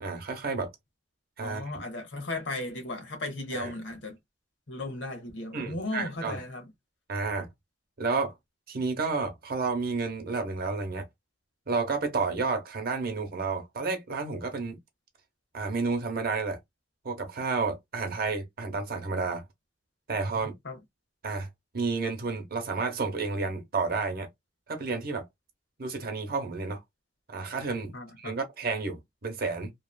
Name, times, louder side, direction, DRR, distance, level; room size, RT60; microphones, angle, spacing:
voice 1, 0.0-0.7 1.4-1.8 3.5-3.7 5.5-6.4 7.1-7.5 8.0-8.3 8.7-11.1 11.7-14.8 15.5-16.6 17.0-19.4 20.1-20.5 21.2-21.5 21.7-24.3 24.7-25.3 25.8-26.8 27.3-29.7, right 4 dB, 55° right, 0.9 m, -31 dB
voice 2, 1.4-4.2 4.7-6.6 20.6-20.8 27.9-28.4, left 2 dB, 75° left, 0.9 m, -36 dB
2.9 x 2.4 x 2.2 m
head